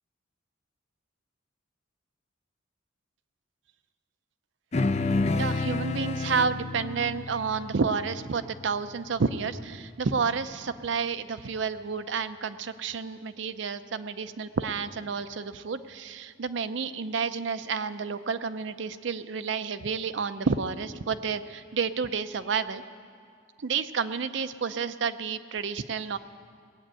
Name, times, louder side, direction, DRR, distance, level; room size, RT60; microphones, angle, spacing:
sound 1, 4.7-9.5, left 3 dB, 35° left, 0.4 m, -30 dB
voice 1, 5.4-22.8 23.6-26.2, right 5 dB, 65° right, 12 dB, 0.5 m, -30 dB
19.0 x 7.7 x 8.9 m, 2.2 s
head